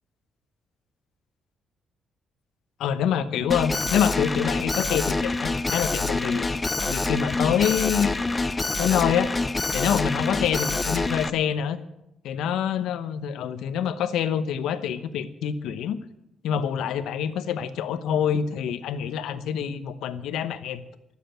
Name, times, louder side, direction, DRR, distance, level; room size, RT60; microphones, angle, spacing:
voice 1, 2.8-6.5 6.8-8.1 8.8-9.3 9.7-11.8 12.2-16.0 16.4-20.8, left 8 dB, 90° left, 12 dB, 0.9 m, -26 dB
Alarm, 3.5-11.3, left 3 dB, 20° left, 0.6 m, -26 dB
14.5 x 7.6 x 9.1 m, 0.88 s
cardioid pair, 100°, 0 cm